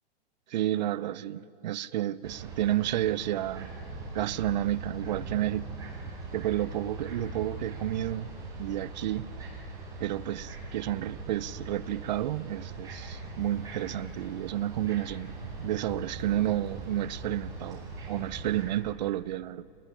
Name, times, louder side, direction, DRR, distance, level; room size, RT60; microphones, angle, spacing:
voice 1, 0.5-3.7 4.1-5.7 6.3-8.3 8.6-9.3 10.0-19.6, right 13 dB, 45° right, 0.6 m, -31 dB
sound 1, 2.2-18.7, right 3 dB, 10° right, 5.6 m, -41 dB
sound 2, 13.4-18.5, left 1 dB, 15° left, 3.4 m, -54 dB
28.5 x 21.0 x 9.9 m
hypercardioid pair, 160°, 31 cm